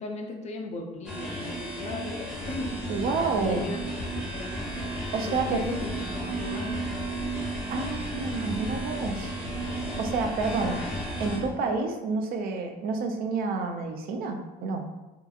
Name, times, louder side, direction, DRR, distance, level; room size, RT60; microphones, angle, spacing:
voice 1, 0.0-2.7 3.5-3.8 4.3-4.6 5.3-5.9 6.4-6.7, left 3 dB, 40° left, 3 dB, 0.4 m, -36 dB
sound 1, 1.1-11.4, right 1 dB, 5° right, 0.7 m, -34 dB
sound 2, 2.3-11.5, equal, 80° left, 1.0 m, -40 dB
voice 2, 2.9-3.7 5.1-5.6 7.7-9.3 10.0-10.8 11.2-14.8, right 4 dB, 60° right, 4 dB, 0.4 m, -29 dB
2.7 x 2.4 x 2.3 m, 1.1 s
cardioid pair, 110°, 17 cm